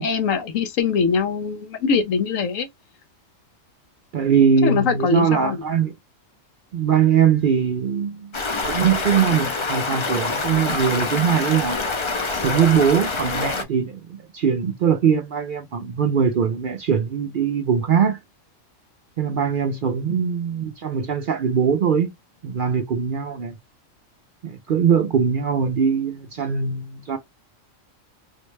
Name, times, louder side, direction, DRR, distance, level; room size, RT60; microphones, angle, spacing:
voice 1, 0.0-2.7 4.6-5.6, left 5 dB, 85° left, 1.1 m, -22 dB
voice 2, 4.1-5.9 6.7-8.4 8.6-11.8 12.3-18.2 19.2-22.1 22.4-23.6 24.4-27.2, right 7 dB, 60° right, 0.5 m, -21 dB
Stream, 8.3-13.6, left 3 dB, 40° left, 0.4 m, -26 dB
4.1 x 2.1 x 3.1 m
omnidirectional pair, 1.3 m